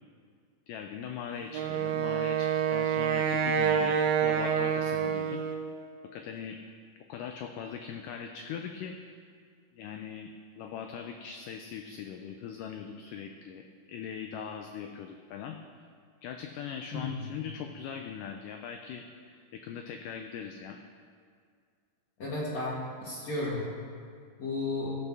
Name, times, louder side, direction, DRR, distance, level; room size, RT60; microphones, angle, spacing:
voice 1, 0.7-5.4 6.1-6.6 7.1-9.2 9.7-10.3 10.6-15.6 16.2-20.8, left 7 dB, 90° left, 4 dB, 1.8 m, -40 dB
Wind instrument woodwind instrument, 1.5-5.8, right 8 dB, 90° right, 2.6 m, -28 dB
voice 2, 16.9-17.3 22.2-23.6 24.4-25.0, left 2 dB, 55° left, -8 dB, 2.5 m, -33 dB
14.5 x 5.5 x 6.0 m, 2.1 s
omnidirectional pair, 4.3 m